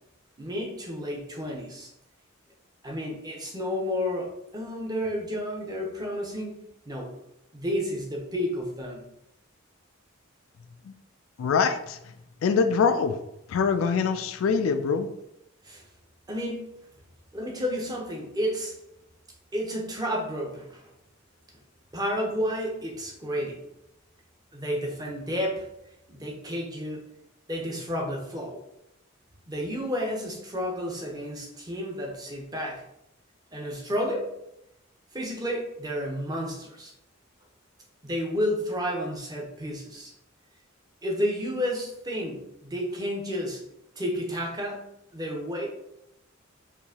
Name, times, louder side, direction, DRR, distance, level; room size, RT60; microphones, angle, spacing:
voice 1, 0.4-1.9 2.8-6.6 6.9-7.1 7.5-9.0 15.6-15.8 16.3-16.8 17.3-18.8 19.5-20.8 21.9-23.6 24.5-25.7 26.1-27.0 27.5-28.6 29.5-32.8 33.5-34.3 35.1-36.9 38.0-40.1 41.0-43.6 44.0-45.7, equal, 20° right, -1 dB, 0.8 m, -31 dB
voice 2, 11.4-12.0 12.4-13.2 13.5-15.1, left 5 dB, 75° left, 8 dB, 0.3 m, -24 dB
4.5 x 2.7 x 2.8 m, 0.81 s
head